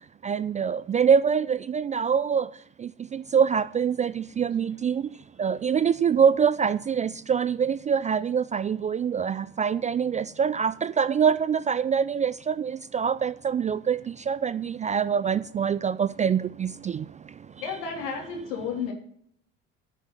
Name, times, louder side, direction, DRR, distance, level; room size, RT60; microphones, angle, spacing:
voice 1, 0.2-2.5 3.1-5.0 5.4-14.0 14.3-17.0, right 7 dB, 20° right, 0.3 m, -24 dB
voice 2, 17.6-18.9, left 6 dB, 70° left, 3.6 m, -32 dB
13.5 x 7.1 x 5.8 m
figure-of-eight pair, 60°, 37 cm